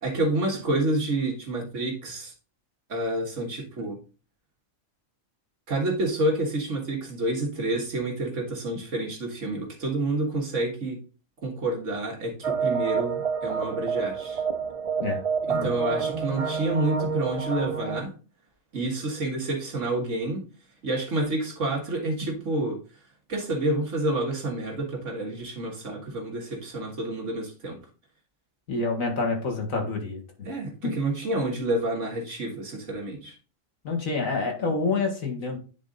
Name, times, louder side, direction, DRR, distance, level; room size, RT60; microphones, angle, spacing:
voice 1, 0.0-2.3 2.9-4.0 5.7-11.0 11.4-14.4 15.5-18.1 18.7-20.4 20.8-22.8 23.3-27.8 30.4-33.3, right 2 dB, 65° right, 0 dB, 2.0 m, -28 dB
sound 1, 12.4-18.0, right 6 dB, 40° right, 0.6 m, -28 dB
voice 2, 28.7-30.2 30.8-30.9 33.8-35.6, left 3 dB, 85° left, 2 dB, 2.1 m, -27 dB
9.7 x 3.8 x 3.9 m, 0.35 s
omnidirectional pair, 1.4 m